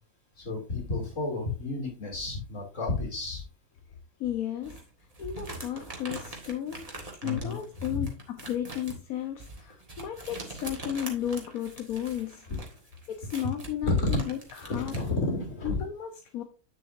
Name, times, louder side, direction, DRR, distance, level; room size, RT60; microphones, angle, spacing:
voice 1, 0.4-3.4 7.2-7.5 7.9-8.1 12.5-12.6 13.8-14.3 14.6-15.8, left 2 dB, 60° left, 0 dB, 3.1 m, -31 dB
voice 2, 4.2-4.8 5.2-6.8 7.2-12.4 13.1-14.9 15.6-16.4, left 10 dB, 75° left, 5 dB, 1.4 m, -34 dB
sound 1, 4.6-15.1, right 2 dB, 25° right, 1.7 m, -43 dB
9.2 x 6.8 x 2.6 m, 0.35 s
omnidirectional pair, 1.5 m